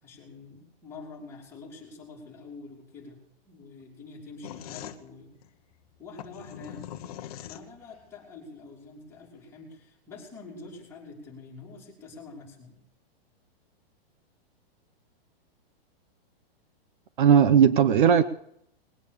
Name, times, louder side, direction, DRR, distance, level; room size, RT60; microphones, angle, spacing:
voice 1, 0.0-3.2 3.5-5.3 6.0-6.9 7.4-12.8, left 3 dB, 10° left, 3.5 m, -46 dB
sound 1, 4.4-8.1, left 11 dB, 40° left, 1.1 m, -42 dB
voice 2, 17.2-18.2, right 8 dB, 55° right, 0.8 m, -17 dB
20.5 x 8.7 x 6.8 m
hypercardioid pair, 175°, 31 cm